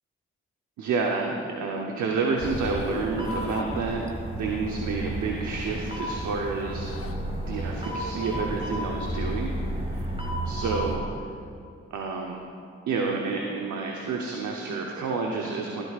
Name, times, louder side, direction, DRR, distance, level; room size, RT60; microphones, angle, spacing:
voice 1, 0.8-4.1 4.4-6.9 7.5-11.1 11.9-12.4 12.9-15.9, right 4 dB, 85° right, 0 dB, 0.9 m, -29 dB
Zipper (clothing), 2.4-4.4 5.6-7.2 7.6-10.0, left 5 dB, 50° left, 0.8 m, -42 dB
sound 1, 2.4-11.0, right 1 dB, 20° right, 2.0 m, -32 dB
14.0 x 11.5 x 2.4 m, 2.6 s
supercardioid pair, 45°, 29 cm